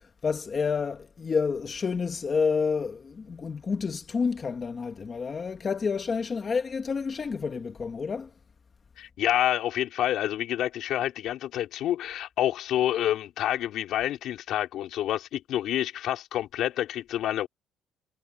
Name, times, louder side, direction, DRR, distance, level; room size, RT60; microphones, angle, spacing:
voice 1, 0.0-8.3, left 5 dB, 35° left, 1.4 m, -29 dB
voice 2, 9.0-17.5, left 12 dB, 70° left, 3.7 m, -28 dB
cardioid pair, 120°, 0 cm